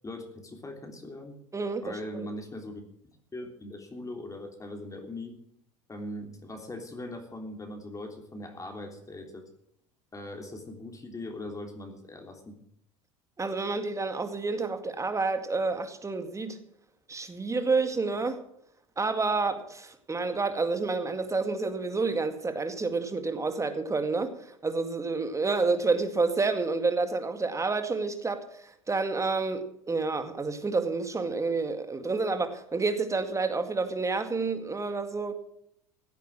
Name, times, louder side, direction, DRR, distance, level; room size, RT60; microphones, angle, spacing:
voice 1, 0.0-1.4 1.8-2.8 3.3-5.3 5.9-9.5 10.1-12.6, left 1 dB, 20° left, 3.4 m, -40 dB
voice 2, 1.5-2.3 13.4-16.6 17.1-18.4 19.0-35.3, right 3 dB, 15° right, 2.1 m, -29 dB
16.5 x 8.9 x 7.5 m
hypercardioid pair, 75°, 17 cm